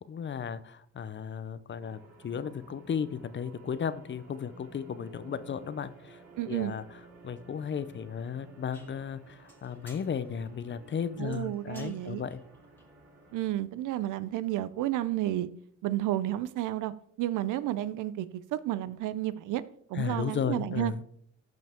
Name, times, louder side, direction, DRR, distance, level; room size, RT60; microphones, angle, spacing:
voice 1, 0.1-6.2 6.5-6.8 7.2-12.4 19.9-21.0, left 7 dB, 40° left, 14 dB, 0.6 m, -35 dB
sound 1, 1.8-13.5, right 3 dB, 55° right, 3.3 m, -54 dB
voice 2, 6.4-6.8 11.2-12.2 13.3-15.5 15.8-16.9 17.2-19.6 19.9-20.9, right 14 dB, 85° right, 15 dB, 0.6 m, -31 dB
sound 2, 8.7-15.0, left 1 dB, 5° left, 2.0 m, -59 dB
14.0 x 5.3 x 3.6 m, 0.67 s
cardioid pair, 90°, 30 cm